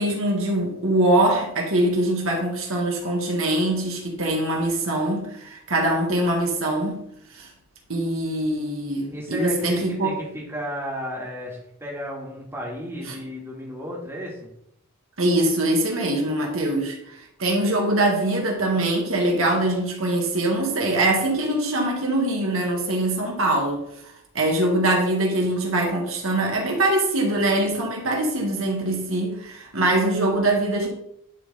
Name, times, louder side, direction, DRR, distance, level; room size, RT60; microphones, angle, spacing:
voice 1, 0.0-7.0 7.3-7.5 7.9-10.1 13.1-13.2 15.2-23.8 24.4-30.9, right 1 dB, 70° right, 0 dB, 1.7 m, -23 dB
voice 2, 9.1-14.5, equal, 10° right, -4 dB, 2.0 m, -33 dB
11.0 x 3.9 x 4.2 m, 0.74 s
head